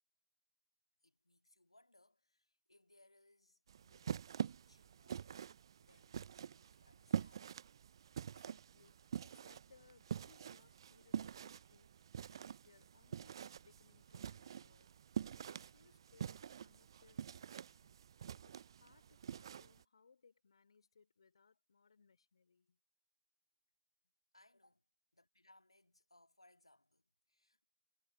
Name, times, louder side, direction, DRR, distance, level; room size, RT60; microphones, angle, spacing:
voice 1, 1.0-7.5 24.3-27.7, left 2 dB, 85° left, 2.6 m, -70 dB
sound 1, 3.7-19.8, right 8 dB, 55° right, 0.4 m, -46 dB
voice 2, 8.1-9.0 9.2-14.9 15.3-18.0 18.4-22.8, left 5 dB, 70° left, 3.8 m, -69 dB
figure-of-eight pair, 125°, 3 cm